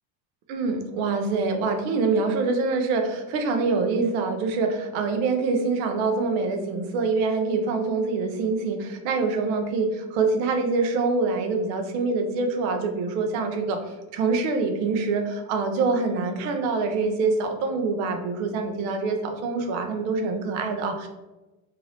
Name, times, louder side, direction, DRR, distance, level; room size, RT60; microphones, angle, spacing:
voice 1, 0.5-21.1, right 4 dB, 60° right, 5 dB, 0.6 m, -25 dB
2.6 x 2.5 x 3.2 m, 1.1 s
cardioid pair, 155°, 41 cm